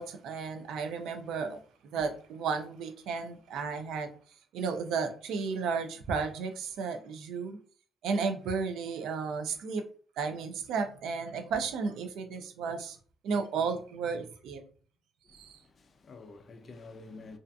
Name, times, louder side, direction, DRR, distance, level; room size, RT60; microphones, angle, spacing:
voice 1, 0.0-1.6 1.9-4.1 4.5-7.6 8.0-9.8 10.2-13.0 13.2-14.6 15.3-15.6, right 5 dB, 75° right, 0.4 m, -33 dB
voice 2, 15.2-17.4, left 3 dB, 35° left, 0.4 m, -49 dB
2.5 x 2.4 x 2.2 m
cardioid pair, 165°, 0 cm